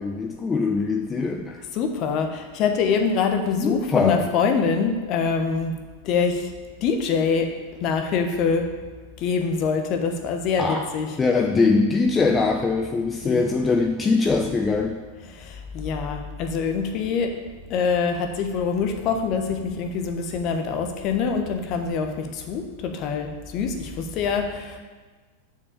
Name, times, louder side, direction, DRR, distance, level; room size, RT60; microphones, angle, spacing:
voice 1, 0.0-1.6 3.6-4.3 10.6-10.8 11.2-15.0, left 4 dB, 20° left, 2 dB, 0.7 m, -22 dB
voice 2, 1.7-5.8 6.0-6.5 6.8-7.5 7.8-8.7 9.2-11.1 13.2-13.4 15.3-17.3 17.7-24.8, left 5 dB, 40° left, 5 dB, 1.1 m, -24 dB
7.3 x 4.9 x 6.7 m, 1.4 s
figure-of-eight pair, 95°, 0 cm